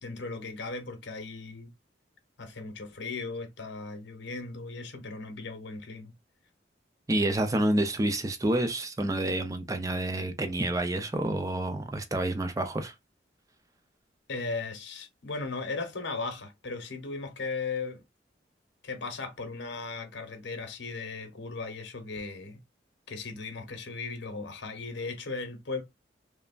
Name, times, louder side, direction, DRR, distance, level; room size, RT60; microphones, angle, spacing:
voice 1, 0.0-1.7 2.4-6.1 14.3-18.0 18.8-22.6 23.1-25.8, left 3 dB, 80° left, 0.8 m, -37 dB
voice 2, 7.1-12.9, right 1 dB, 20° right, 0.4 m, -28 dB
3.3 x 2.0 x 2.3 m
head